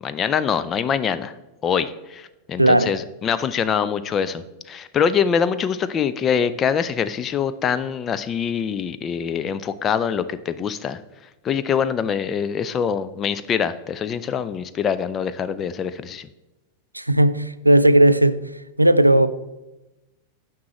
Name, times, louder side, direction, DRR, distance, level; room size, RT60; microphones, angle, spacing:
voice 1, 0.0-1.3 1.6-4.4 4.7-11.0 11.4-16.3, left 7 dB, 25° left, 0.4 m, -24 dB
voice 2, 2.6-2.9 16.9-18.4 18.8-19.3, right 1 dB, 85° right, 0.3 m, -15 dB
9.4 x 5.9 x 3.1 m
figure-of-eight pair, 90°, 0 cm